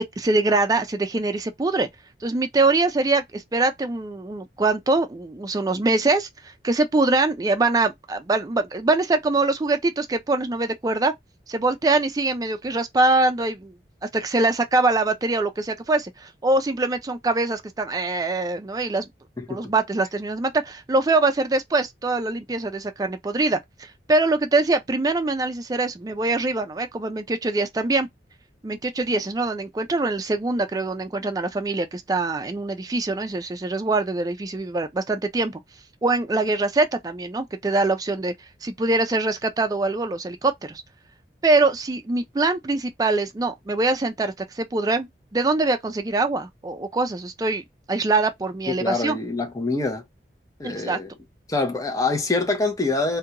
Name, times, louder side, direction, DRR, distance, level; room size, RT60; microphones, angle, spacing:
voice 1, 0.0-1.9 2.2-11.1 11.5-13.7 14.1-19.1 19.5-28.1 28.6-35.6 36.0-38.3 38.6-40.8 41.4-47.6 47.9-49.2 50.6-51.0, right 2 dB, 20° right, 0.4 m, -23 dB
voice 2, 19.4-19.7 48.8-50.0 50.6-51.1 51.5-53.2, left 3 dB, 20° left, 0.6 m, -25 dB
2.5 x 2.2 x 2.8 m
head